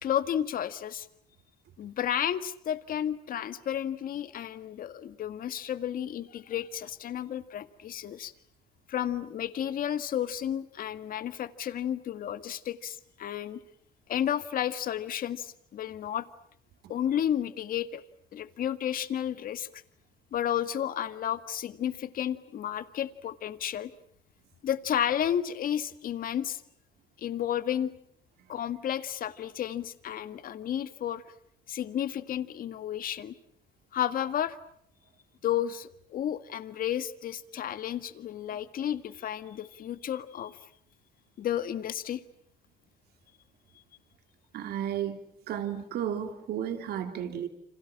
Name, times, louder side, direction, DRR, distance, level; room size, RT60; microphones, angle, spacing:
voice 1, 0.0-1.1 1.8-8.3 8.9-13.6 14.1-16.3 16.9-18.0 18.3-19.7 20.3-23.9 24.6-26.6 27.2-27.9 28.5-31.2 31.7-33.3 33.9-34.6 35.4-40.6 41.4-42.2, left 10 dB, 55° left, 12 dB, 1.9 m, -32 dB
voice 2, 44.5-47.5, right 9 dB, 70° right, 7 dB, 3.2 m, -33 dB
29.5 x 27.0 x 7.4 m, 0.66 s
cardioid pair, 110°, 17 cm